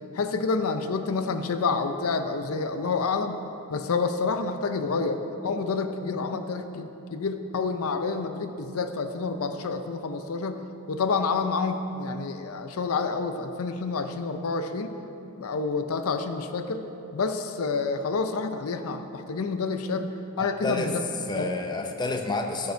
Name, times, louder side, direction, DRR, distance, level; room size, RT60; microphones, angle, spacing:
voice 1, 0.1-3.4 3.7-14.9 15.4-16.8 17.1-20.1 20.4-21.0 21.3-21.5, left 4 dB, 70° left, 8 dB, 0.5 m, -28 dB
voice 2, 20.4-20.9 21.3-22.7, left 2 dB, 20° left, 4 dB, 0.6 m, -29 dB
15.5 x 5.4 x 4.5 m, 3.0 s
head